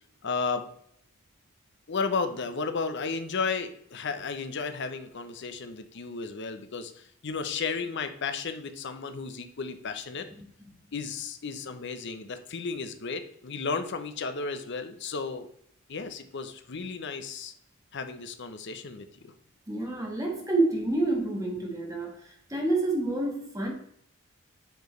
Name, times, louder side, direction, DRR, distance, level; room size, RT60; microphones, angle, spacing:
voice 1, 0.2-0.7 1.9-10.3 10.9-15.5 15.9-17.5 17.9-19.3, left 4 dB, 55° left, 0.7 m, -33 dB
voice 2, 19.7-23.7, right 2 dB, 15° right, 1.3 m, -28 dB
8.0 x 4.5 x 3.1 m
head